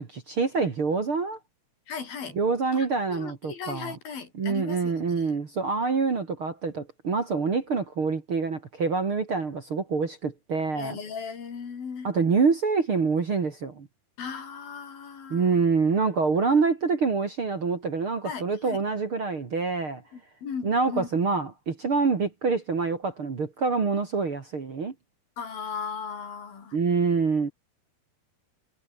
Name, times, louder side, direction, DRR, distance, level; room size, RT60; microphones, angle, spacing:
voice 1, 0.0-1.4 2.4-3.9 4.4-11.0 12.0-13.9 15.3-20.0 20.6-24.9 26.7-27.5, right 4 dB, 40° right, 2.7 m, -26 dB
voice 2, 1.9-2.4 2.7-5.3 10.7-12.1 14.2-15.6 18.2-18.8 20.1-21.1 25.4-26.8, left 6 dB, 65° left, 5.8 m, -37 dB
omnidirectional pair, 4.6 m